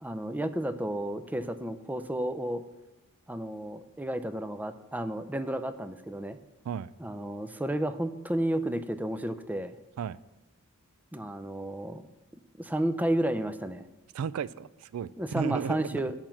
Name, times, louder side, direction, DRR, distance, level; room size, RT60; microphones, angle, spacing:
voice 1, 0.0-2.6 3.3-6.4 7.0-9.8 11.1-12.1 12.6-13.8 15.2-16.1, right 1 dB, 10° right, 10 dB, 0.4 m, -32 dB
voice 2, 14.1-16.0, right 7 dB, 75° right, 17 dB, 0.3 m, -34 dB
9.0 x 5.8 x 7.5 m, 1.0 s
head